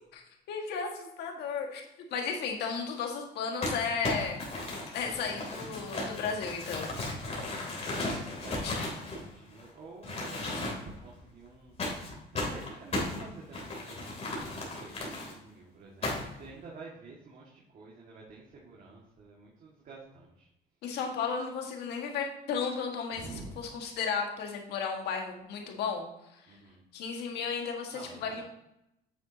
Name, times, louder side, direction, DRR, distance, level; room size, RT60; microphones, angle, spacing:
voice 1, 0.5-1.8 2.1-4.4 4.9-6.9 8.6-8.7 20.8-23.2 23.6-26.1 26.3-26.4 26.9-28.4, left 6 dB, 80° left, 2 dB, 1.8 m, -34 dB
Crumpling crinkling, 3.6-9.6 10.0-11.0 11.8-15.3 16.0-16.4, left 2 dB, 40° left, 3.1 m, -35 dB
voice 2, 7.4-7.9 8.4-20.5 23.2-23.5 26.5-26.8 27.9-28.4, right 3 dB, 50° right, -4 dB, 1.9 m, -49 dB
9.0 x 7.1 x 2.8 m, 0.84 s
cardioid pair, 110°, 17 cm